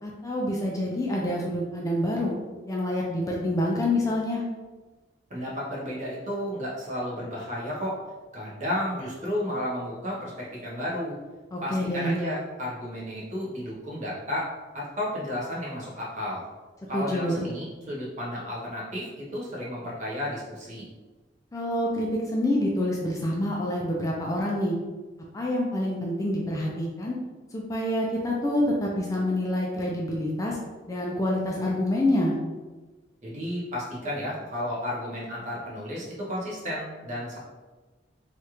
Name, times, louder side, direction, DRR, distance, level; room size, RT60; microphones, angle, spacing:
voice 1, 0.0-2.3 2.7-4.4 11.5-12.2 16.9-17.4 21.5-24.8 25.3-27.2 27.5-30.6 30.9-32.4, left 1 dB, 20° left, -2 dB, 0.4 m, -27 dB
voice 2, 5.3-8.0 8.3-11.2 11.6-16.4 16.9-20.8 33.2-37.4, left 1 dB, 40° right, -5 dB, 0.9 m, -32 dB
3.2 x 2.4 x 2.9 m, 1.3 s
head